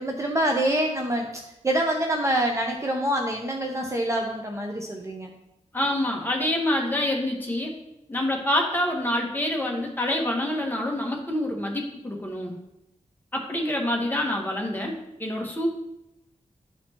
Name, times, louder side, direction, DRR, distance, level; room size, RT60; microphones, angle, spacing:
voice 1, 0.0-5.3, right 1 dB, 20° right, 1 dB, 0.7 m, -26 dB
voice 2, 5.7-7.7 8.1-12.6 13.3-15.7, left 1 dB, 15° left, 0 dB, 1.3 m, -26 dB
12.0 x 4.3 x 2.9 m, 0.87 s
wide cardioid pair, 135°, 13 cm